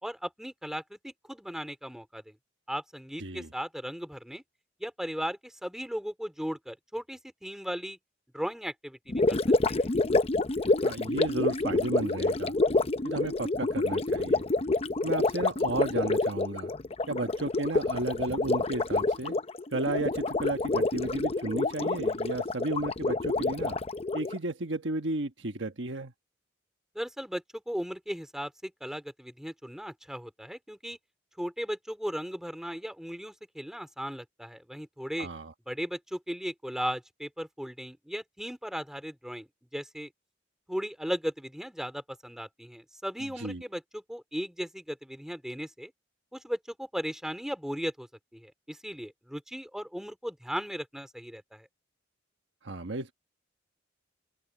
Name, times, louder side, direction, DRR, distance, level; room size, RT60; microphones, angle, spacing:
voice 1, 0.0-2.4 2.7-4.4 4.8-8.0 8.3-9.4 9.8-9.9 26.9-31.0 31.4-35.3 35.7-40.1 40.7-45.9 46.3-51.7, equal, 5° right, 3.9 m, -37 dB
voice 2, 3.2-3.5 10.8-12.5 13.0-14.4 15.0-16.7 17.1-19.4 19.7-23.8 24.1-26.1 35.2-35.5 43.4-43.6 52.6-53.1, right 2 dB, 70° right, 1.4 m, -33 dB
Gurgling, 9.1-24.4, left 2 dB, 35° left, 0.7 m, -28 dB
open air
head